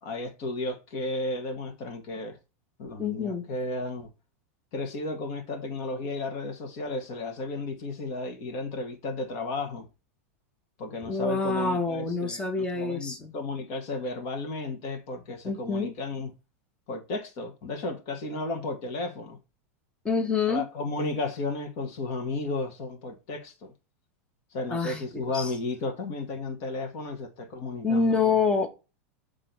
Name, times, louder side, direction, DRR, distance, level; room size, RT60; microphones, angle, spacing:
voice 1, 0.0-2.4 2.8-4.1 4.7-9.9 10.8-16.3 16.9-19.4 20.5-23.7 24.5-28.4, left 2 dB, 45° left, 2.2 m, -33 dB
voice 2, 3.0-3.4 11.0-13.3 15.4-15.9 20.0-20.6 24.7-25.5 27.8-28.7, left 4 dB, 10° left, 1.3 m, -27 dB
7.7 x 3.7 x 4.4 m
supercardioid pair, 150°, 8 cm